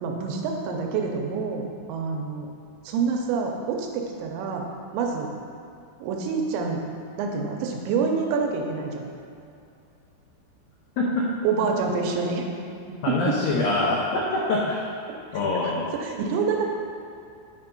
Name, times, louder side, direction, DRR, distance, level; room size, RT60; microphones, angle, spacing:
voice 1, 0.0-2.5 2.9-4.6 4.9-5.3 6.0-6.8 7.2-9.0 11.4-12.5 13.1-13.2 15.9-16.6, right 5 dB, 85° right, 1 dB, 3.0 m, -27 dB
voice 2, 13.0-14.8 15.3-15.9, left 2 dB, 85° left, -4 dB, 2.0 m, -24 dB
9.2 x 4.4 x 5.3 m, 2.6 s
omnidirectional pair, 5.2 m